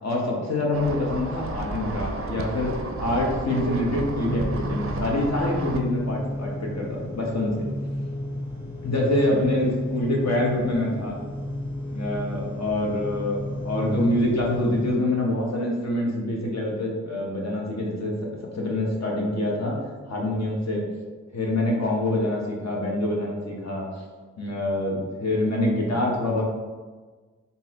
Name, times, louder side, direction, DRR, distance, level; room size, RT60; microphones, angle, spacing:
voice 1, 0.0-7.6 8.8-11.2 11.9-18.1 18.6-19.8 20.1-20.8 21.3-23.8 24.4-26.4, left 1 dB, 60° left, -2 dB, 1.0 m, -25 dB
sound 1, 0.7-5.8, right 3 dB, 45° right, 0.4 m, -32 dB
sound 2, 4.0-14.9, left 1 dB, 20° left, 1.0 m, -33 dB
3.7 x 2.7 x 2.9 m, 1.4 s
cardioid pair, 50°, 30 cm